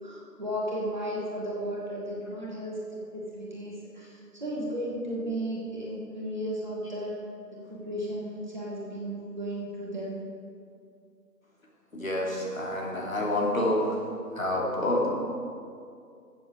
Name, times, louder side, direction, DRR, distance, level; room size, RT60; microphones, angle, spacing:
voice 1, 0.0-2.8 3.1-7.2 7.7-10.2, equal, 30° right, -5 dB, 1.9 m, -34 dB
voice 2, 11.9-13.8 14.3-15.1, left 1 dB, 55° left, -3 dB, 3.0 m, -28 dB
13.5 x 7.7 x 6.2 m, 2.4 s
figure-of-eight pair, 170°, 49 cm